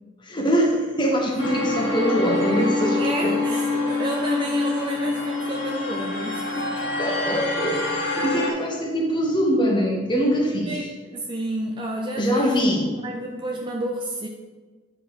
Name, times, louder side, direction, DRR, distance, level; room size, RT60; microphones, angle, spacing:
voice 1, 0.2-3.4 7.0-10.8 12.2-12.9, equal, 25° left, 0 dB, 1.3 m, -23 dB
sound 1, 1.4-8.5, left 2 dB, 70° left, 2.0 m, -26 dB
voice 2, 3.0-6.7 10.7-12.6 13.0-14.3, right 1 dB, 25° right, 0 dB, 0.6 m, -30 dB
9.5 x 4.9 x 4.9 m, 1.3 s
head